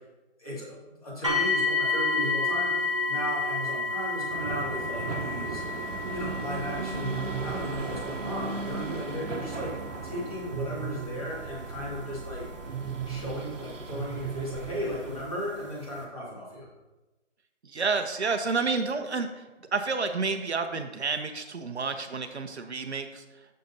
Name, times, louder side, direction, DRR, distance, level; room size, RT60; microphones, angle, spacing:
voice 1, 0.4-9.8 10.0-12.4 13.0-16.7, left 1 dB, 30° left, -6 dB, 2.4 m, -36 dB
sound 1, 1.2-14.1 15.0-15.1 15.6-15.7, left 3 dB, 25° right, 0.7 m, -32 dB
sound 2, 4.3-15.2, right 4 dB, 85° right, 1.0 m, -36 dB
voice 2, 17.6-19.4 19.7-23.2, right 4 dB, 60° right, 7 dB, 0.8 m, -30 dB
10.0 x 6.6 x 2.8 m, 1.1 s
figure-of-eight pair, 170°, 37 cm